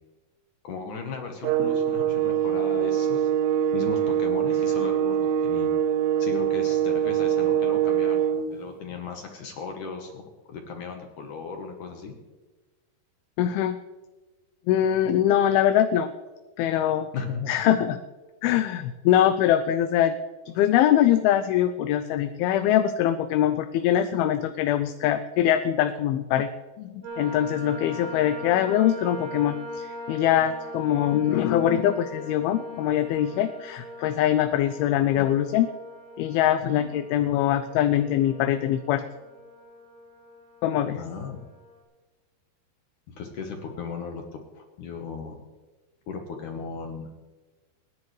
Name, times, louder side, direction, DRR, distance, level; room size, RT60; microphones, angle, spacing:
voice 1, 0.6-3.3 3.7-5.7 6.2-12.2 17.1-17.5 36.6-36.9 40.9-41.4 43.1-45.4 46.1-47.1, left 5 dB, 65° left, 3 dB, 2.4 m, -36 dB
sound 1, 1.4-8.5, right 10 dB, 85° right, 2.9 m, -24 dB
voice 2, 13.4-13.8 14.7-16.1 16.6-17.1 17.5-18.0 18.4-20.2 20.6-26.5 26.8-35.7 36.2-39.0 40.6-41.0, left 11 dB, 80° left, 9 dB, 2.4 m, -23 dB
sound 2, 27.0-41.7, left 1 dB, 65° right, 6.5 m, -41 dB
27.5 x 10.5 x 3.2 m, 1.2 s
omnidirectional pair, 4.6 m